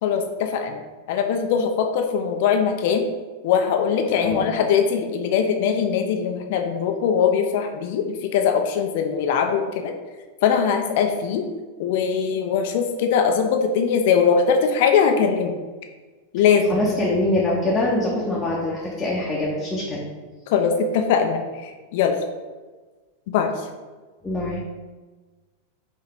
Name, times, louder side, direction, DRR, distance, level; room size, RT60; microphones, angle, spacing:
voice 1, 0.0-0.8 1.1-3.1 3.4-8.1 8.3-9.9 10.4-11.4 11.8-15.5 16.3-16.9 20.5-22.1 23.3-23.5, left 6 dB, 50° left, 4 dB, 0.5 m, -21 dB
voice 2, 16.7-20.1 24.2-24.6, left 1 dB, 10° left, -5 dB, 0.9 m, -24 dB
5.5 x 2.8 x 3.5 m, 1.3 s
figure-of-eight pair, 90°, 0 cm